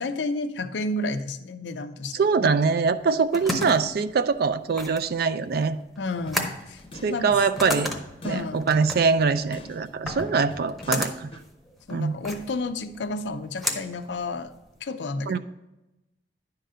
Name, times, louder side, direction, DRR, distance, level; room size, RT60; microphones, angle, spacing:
voice 1, 0.0-2.5 6.0-6.8 7.1-7.4 8.2-8.8 11.9-14.5 14.8-15.4, left 2 dB, 80° left, 0.6 m, -31 dB
voice 2, 2.1-5.8 7.0-7.9 8.2-11.3 11.9-12.1 15.3-15.4, right 5 dB, 60° right, 0.4 m, -23 dB
sound 1, 2.9-14.8, left 1 dB, ahead, 0.8 m, -34 dB
sound 2, 6.3-11.5, equal, 30° left, 0.7 m, -45 dB
10.5 x 3.8 x 5.5 m
head